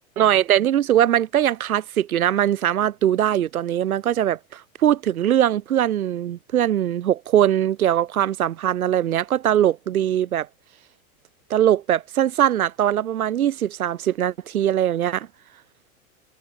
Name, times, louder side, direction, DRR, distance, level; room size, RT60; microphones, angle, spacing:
voice 1, 0.2-10.5 11.5-15.3, right 11 dB, 85° right, 2.9 m, -21 dB
hypercardioid pair, 110°, 42 cm